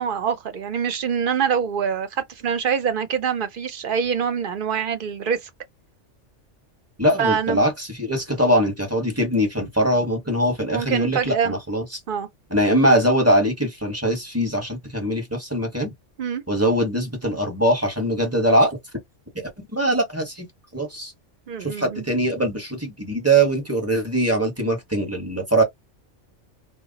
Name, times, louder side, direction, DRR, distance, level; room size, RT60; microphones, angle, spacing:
voice 1, 0.0-5.5 7.2-7.6 10.7-11.6 12.1-12.3 16.2-16.4 21.5-22.1, right 7 dB, 55° right, 0.7 m, -25 dB
voice 2, 7.0-11.8 12.5-15.9 16.5-18.8 19.7-20.5 20.7-21.1 21.6-25.6, right 1 dB, 15° right, 0.8 m, -22 dB
2.2 x 2.0 x 3.7 m
omnidirectional pair, 1.2 m